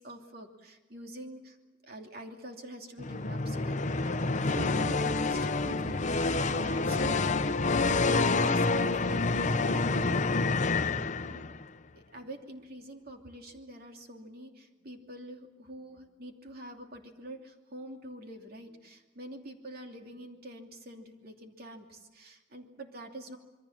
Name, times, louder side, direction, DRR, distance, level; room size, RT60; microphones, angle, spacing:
voice 1, 0.0-1.5 1.9-7.2 7.9-10.2 10.7-11.6 12.1-23.4, right 1 dB, 55° right, 3 dB, 2.8 m, -45 dB
sound 1, 3.0-11.6, left 3 dB, 40° left, 0.8 m, -28 dB
27.0 x 23.0 x 7.4 m, 1.1 s
head